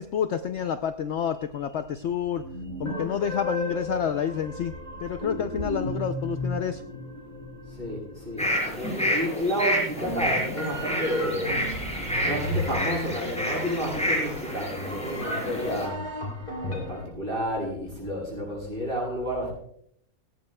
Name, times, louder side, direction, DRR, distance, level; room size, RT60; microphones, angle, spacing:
voice 1, 0.0-2.4 2.8-4.7 5.0-6.8, left 8 dB, 65° left, 9 dB, 0.8 m, -29 dB
sound 1, 1.4-1.5 2.3-17.0, equal, 30° left, 3.9 m, -35 dB
voice 2, 7.7-11.6 12.2-16.0 16.6-19.5, equal, 35° right, -4 dB, 7.0 m, -30 dB
sound 2, 8.4-15.9, equal, 5° left, 4.3 m, -29 dB
17.0 x 17.0 x 2.2 m, 0.70 s
omnidirectional pair, 1.5 m